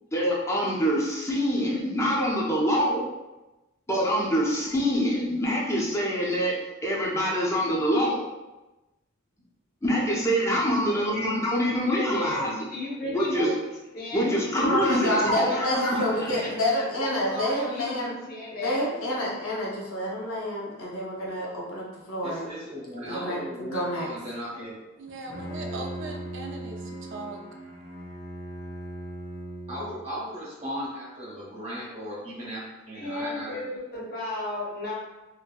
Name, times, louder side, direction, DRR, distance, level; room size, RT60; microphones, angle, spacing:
voice 1, 0.1-3.1 3.9-6.5 6.8-8.2 9.8-12.7 13.1-13.5 14.1-16.3, equal, 15° left, -4 dB, 0.5 m, -25 dB
voice 2, 10.9-11.3 13.0-13.5 22.2-24.8 25.5-26.2 29.7-34.1, equal, 30° right, -8 dB, 1.1 m, -37 dB
voice 3, 11.8-13.5 13.9-14.4 14.8-19.0 33.0-34.9, left 2 dB, 45° left, -4 dB, 0.7 m, -34 dB
voice 4, 14.7-18.2 18.6-22.5 23.0-24.1, left 1 dB, 85° left, -4 dB, 0.8 m, -28 dB
voice 5, 25.0-26.8 27.1-27.4, right 2 dB, 60° right, 2 dB, 0.4 m, -38 dB
Bowed string instrument, 25.1-30.1, right 1 dB, 90° right, 0.9 m, -38 dB
2.8 x 2.5 x 2.2 m, 1.1 s
head